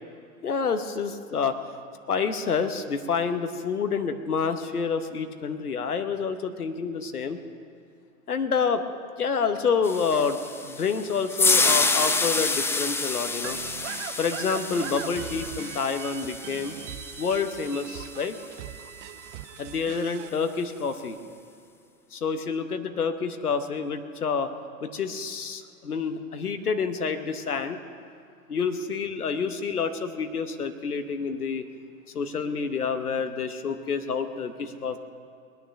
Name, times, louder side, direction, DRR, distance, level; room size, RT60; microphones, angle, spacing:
voice 1, 0.4-1.5 2.1-7.4 8.3-8.8 9.2-10.4 10.6-13.6 14.2-16.7 17.2-18.4 19.6-21.2 22.1-24.5 24.8-27.8 28.5-31.6 32.1-35.0, left 5 dB, 80° left, 8 dB, 1.0 m, -28 dB
sound 1, 9.8-18.1, left 3 dB, 5° left, 0.5 m, -28 dB
sound 2, 13.4-20.3, right 12 dB, 55° right, 0.7 m, -40 dB
20.5 x 9.3 x 6.7 m, 2.3 s
figure-of-eight pair, 90°, 44 cm